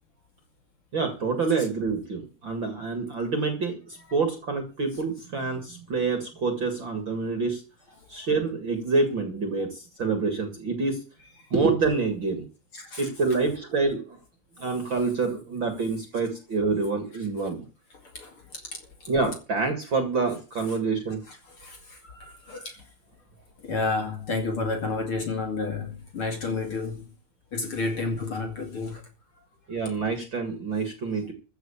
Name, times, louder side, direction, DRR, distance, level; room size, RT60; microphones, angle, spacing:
voice 1, 0.9-7.6 8.1-11.0 11.5-12.4 13.0-14.0 14.6-17.6 19.1-21.2 29.7-31.3, right 4 dB, 40° right, 2.3 m, -27 dB
voice 2, 8.0-8.3 11.4-11.5 12.7-13.5 14.6-15.1 17.1-17.3 17.9-19.1 20.6-20.8 21.3-22.9 23.6-27.1 27.5-29.1, left 3 dB, 40° left, 2.9 m, -32 dB
14.5 x 5.7 x 8.5 m
omnidirectional pair, 4.2 m